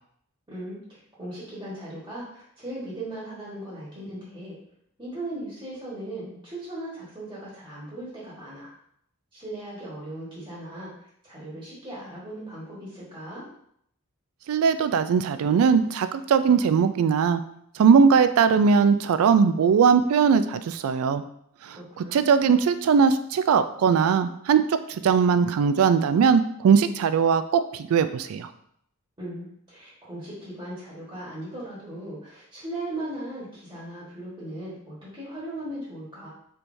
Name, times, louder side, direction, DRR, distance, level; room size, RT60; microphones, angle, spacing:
voice 1, 0.5-4.6 5.0-8.7 9.3-10.9 11.2-13.4 21.7-22.3 29.2-36.3, right 1 dB, 20° right, -8 dB, 1.3 m, -38 dB
voice 2, 14.5-17.4 17.8-21.2 21.6-28.5, right 6 dB, 70° right, 11 dB, 0.3 m, -20 dB
4.5 x 3.4 x 2.6 m, 0.70 s
head